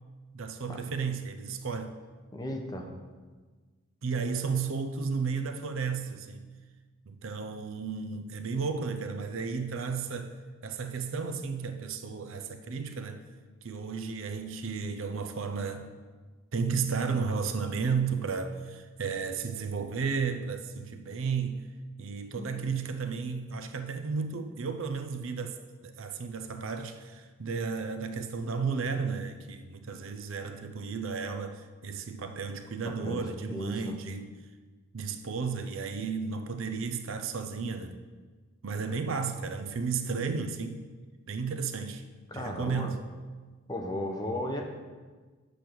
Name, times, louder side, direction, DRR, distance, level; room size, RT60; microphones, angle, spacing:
voice 1, 0.3-1.9 4.0-6.4 7.1-10.3 10.6-13.2 13.6-15.9 16.5-21.7 22.0-25.6 25.8-34.3 34.9-38.0 38.6-40.8 41.3-42.0 42.3-43.0, right 5 dB, 65° right, 0.5 m, -33 dB
voice 2, 2.3-2.9 22.4-22.5 33.0-33.2 33.5-34.0 42.3-42.9 43.7-44.6, left 1 dB, 15° left, 0.8 m, -35 dB
7.7 x 5.0 x 6.1 m
head